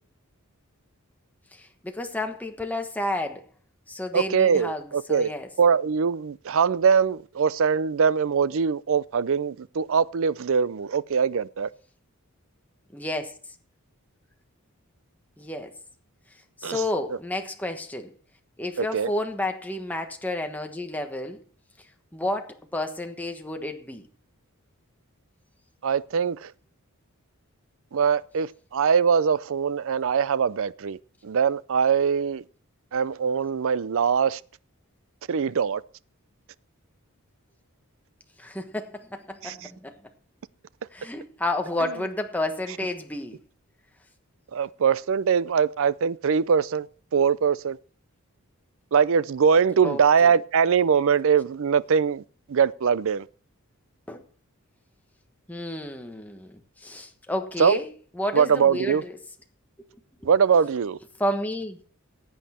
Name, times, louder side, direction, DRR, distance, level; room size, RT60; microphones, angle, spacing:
voice 1, 1.5-3.4 3.9-5.5 12.9-13.4 15.4-15.8 16.6-18.1 18.6-21.4 22.1-24.1 38.4-40.0 40.9-43.4 49.8-50.3 54.1-54.2 55.5-59.2 60.2-60.3 61.2-61.8, left 1 dB, 5° left, 1.2 m, -31 dB
voice 2, 4.1-5.3 5.6-11.7 16.6-16.8 18.8-19.1 25.8-26.5 27.9-31.0 31.2-32.4 32.9-34.4 35.3-35.8 39.4-39.6 44.5-46.9 47.1-47.8 48.9-52.2 52.5-53.3 57.6-57.8 58.3-59.0 60.2-61.0, right 6 dB, 65° right, 0.5 m, -22 dB
15.5 x 8.7 x 4.3 m
head